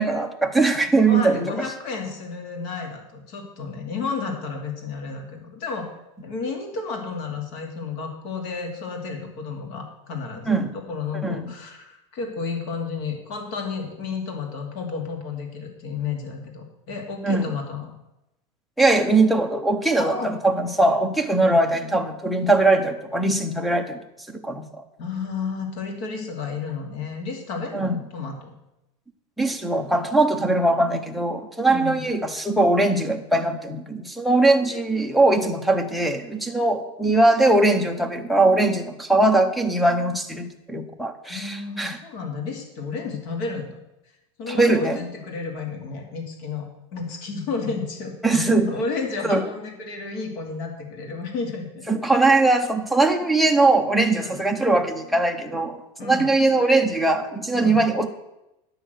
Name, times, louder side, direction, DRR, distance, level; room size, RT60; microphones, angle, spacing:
voice 1, 0.0-1.5 10.5-10.8 11.2-11.5 17.2-17.5 18.8-24.0 24.3-24.6 27.7-28.0 29.4-42.0 44.5-45.1 48.2-48.7 49.3-49.4 51.9-58.1, right 2 dB, ahead, 8 dB, 0.7 m, -21 dB
voice 2, 1.1-5.9 6.2-17.9 20.0-20.4 21.4-21.6 25.0-28.5 31.7-32.0 41.3-43.8 44.4-51.9 54.2-54.4 56.0-56.3 57.5-57.8, left 4 dB, 50° left, 3 dB, 2.3 m, -32 dB
10.0 x 6.5 x 8.0 m, 0.90 s
supercardioid pair, 175°, 16 cm